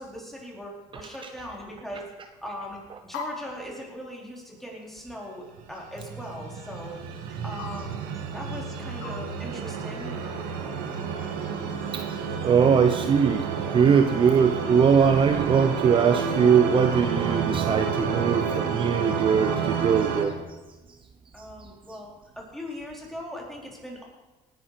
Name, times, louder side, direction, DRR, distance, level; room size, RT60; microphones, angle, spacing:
voice 1, 0.0-2.1 2.4-10.1 21.3-24.0, equal, ahead, -2 dB, 4.4 m, -40 dB
sound 1, 2.4-9.2, left 4 dB, 85° left, 3.1 m, -45 dB
sound 2, 5.9-20.2, right 6 dB, 90° right, 2.2 m, -30 dB
voice 2, 12.4-20.3, right 6 dB, 35° right, 8 dB, 0.8 m, -21 dB
19.0 x 10.5 x 5.1 m, 1.2 s
cardioid pair, 110°, 15 cm